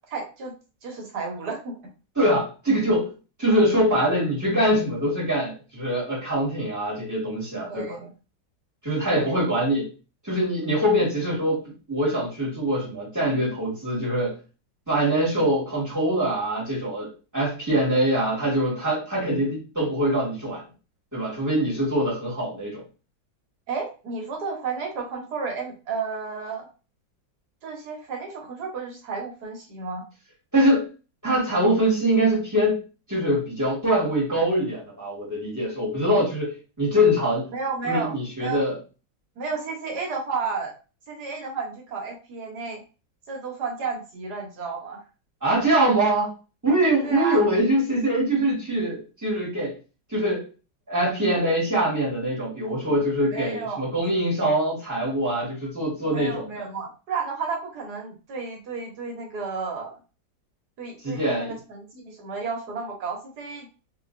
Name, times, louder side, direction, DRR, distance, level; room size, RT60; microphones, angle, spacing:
voice 1, 0.1-0.5 0.8-1.7 7.6-8.1 9.1-9.3 23.7-26.7 27.6-30.0 37.5-38.1 38.4-38.6 39.4-40.7 41.1-42.8 43.3-45.0 47.0-47.4 53.3-53.8 56.1-59.9 60.8-63.7, right 4 dB, 65° right, 1 dB, 1.5 m, -32 dB
voice 2, 2.2-3.1 3.4-8.0 8.8-9.9 10.2-14.3 14.9-20.6 21.1-22.8 30.5-30.9 31.2-32.8 33.1-37.5 37.8-38.8 45.4-46.3 46.6-49.7 50.1-50.5 50.9-56.7 61.0-61.6, right 1 dB, 10° right, -6 dB, 1.6 m, -23 dB
3.8 x 3.0 x 2.5 m, 0.33 s
omnidirectional pair, 2.0 m